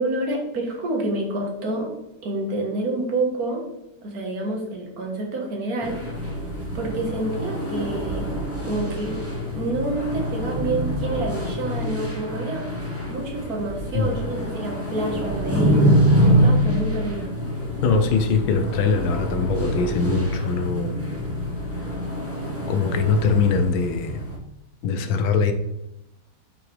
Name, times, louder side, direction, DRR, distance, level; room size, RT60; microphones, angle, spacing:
voice 1, 0.0-1.9 2.2-3.6 4.0-6.0 6.7-8.3 8.6-9.2 9.5-17.3, right 2 dB, 50° right, 0 dB, 1.9 m, -28 dB
sound 1, 5.8-24.4, equal, 10° right, 1.0 m, -25 dB
voice 2, 17.8-21.0 22.7-24.2 24.8-25.5, left 5 dB, 85° left, 8 dB, 1.6 m, -22 dB
7.7 x 5.8 x 3.4 m, 0.86 s
omnidirectional pair, 2.2 m